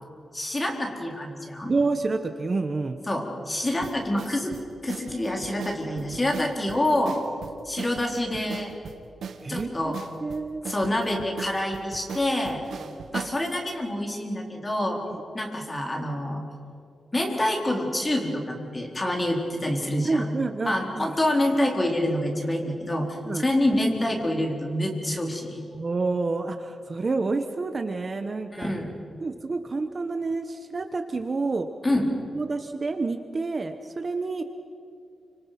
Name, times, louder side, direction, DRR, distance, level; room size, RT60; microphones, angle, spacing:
voice 1, 0.3-1.7 3.1-4.5 4.8-7.1 7.6-8.7 9.5-10.0 10.6-12.6 13.1-15.0 15.3-16.4 17.1-20.3 20.6-25.6 28.5-28.9 31.8-32.1, left 1 dB, 20° left, 1 dB, 4.1 m, -27 dB
voice 2, 1.7-3.0 9.4-9.9 10.2-10.6 15.1-15.2 19.1-19.2 20.0-21.1 23.2-23.4 25.7-28.7 29.2-31.7 32.3-34.4, right 3 dB, 35° right, 7 dB, 1.1 m, -28 dB
sound 1, 3.8-13.4, right 6 dB, 80° right, 1.8 m, -39 dB
29.5 x 26.0 x 6.0 m, 2.6 s
wide cardioid pair, 135°, 0 cm